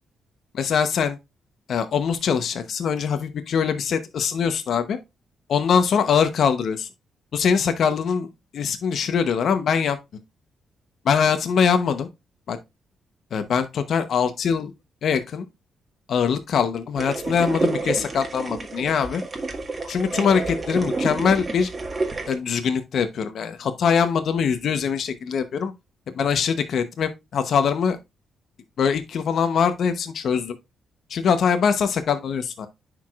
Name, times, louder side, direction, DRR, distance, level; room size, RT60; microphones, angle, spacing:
voice 1, 0.5-1.2 1.7-5.0 5.5-6.9 7.3-10.0 11.1-12.1 12.5-12.6 13.3-14.7 15.0-15.4 16.1-19.2 19.9-21.7 22.3-25.7 26.2-28.0 28.8-30.6 31.1-32.7, left 6 dB, 65° left, 0.9 m, -22 dB
sound 1, 17.0-22.4, right 3 dB, 30° right, 1.8 m, -29 dB
9.9 x 4.7 x 2.4 m
cardioid pair, 85°, 0 cm